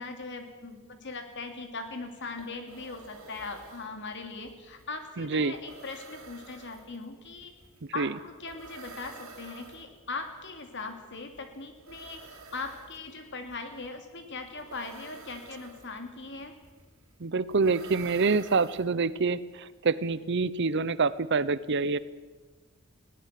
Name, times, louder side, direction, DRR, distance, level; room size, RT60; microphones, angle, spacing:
voice 1, 0.0-7.5 7.9-16.5, left 3 dB, 55° left, 6 dB, 2.8 m, -40 dB
sound 1, 2.2-19.3, right 3 dB, 70° right, 3.6 m, -51 dB
voice 2, 5.2-5.5 8.0-8.1 17.2-22.0, right 4 dB, 55° right, 17 dB, 0.7 m, -26 dB
20.5 x 17.0 x 7.6 m, 1.3 s
head